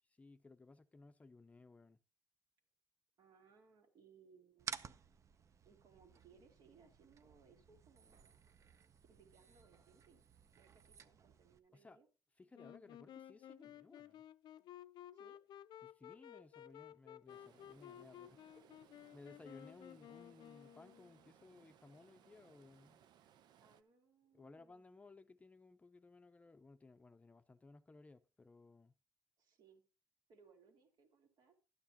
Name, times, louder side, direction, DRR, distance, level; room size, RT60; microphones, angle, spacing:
voice 1, 0.2-2.0 11.7-12.0 12.4-14.2 15.8-18.5 19.1-23.0 24.3-28.9, left 3 dB, 20° left, 0.6 m, -60 dB
voice 2, 3.2-4.7 5.6-8.4 9.1-10.2 10.5-12.1 15.1-15.4 18.4-18.8 23.6-24.8 29.4-29.8 30.3-31.6, right 5 dB, 70° right, 2.4 m, -67 dB
sound 1, 4.6-11.6, right 6 dB, 45° right, 0.6 m, -54 dB
Wind instrument woodwind instrument, 12.5-21.3, left 11 dB, 80° left, 0.4 m, -56 dB
Stream, 17.3-23.8, right 9 dB, 85° right, 0.6 m, -68 dB
12.5 x 9.2 x 2.8 m
cardioid pair, 130°, 7 cm